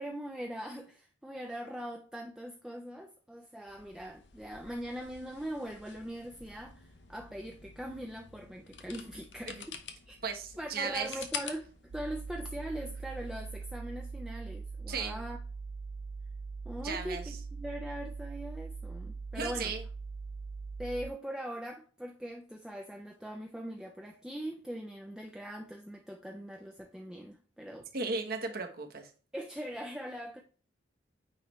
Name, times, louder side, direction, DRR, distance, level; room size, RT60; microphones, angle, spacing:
voice 1, 0.0-9.7 10.1-10.2 10.6-11.7 11.9-15.4 16.6-19.7 20.8-27.9 29.3-30.4, equal, 5° right, 0.4 m, -41 dB
sound 1, 3.7-13.3, left 7 dB, 65° left, 0.8 m, -48 dB
voice 2, 10.2-11.1 14.9-15.2 16.8-17.2 19.4-19.8 27.9-29.1, right 4 dB, 50° right, 1.1 m, -35 dB
sound 2, 11.9-21.1, right 4 dB, 80° right, 0.4 m, -41 dB
9.3 x 3.2 x 3.1 m
head